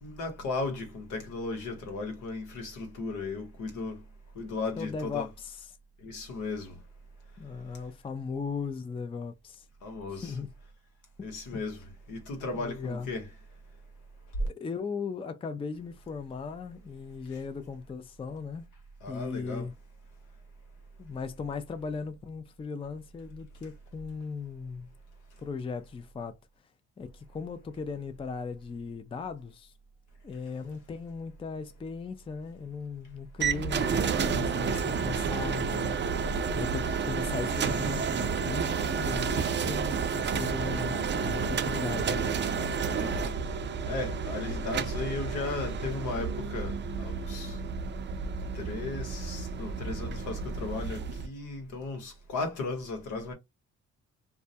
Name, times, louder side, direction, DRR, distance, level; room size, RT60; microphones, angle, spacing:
voice 1, 0.0-4.0 4.4-5.3 6.0-6.7 9.8-10.3 11.2-11.8 12.1-13.3 19.0-19.6 34.7-34.8 42.9-43.3 43.9-47.5 48.6-53.3, left 3 dB, 85° left, 1.1 m, -36 dB
voice 2, 4.8-5.8 7.4-9.6 10.1-10.5 11.5-11.6 12.5-13.1 14.4-18.7 19.1-19.7 21.0-24.9 25.4-26.3 27.0-29.7 30.2-42.4, left 5 dB, 20° left, 0.4 m, -37 dB
sound 1, 33.4-51.3, right 5 dB, 40° right, 0.5 m, -31 dB
2.3 x 2.1 x 2.7 m
cardioid pair, 90°, 30 cm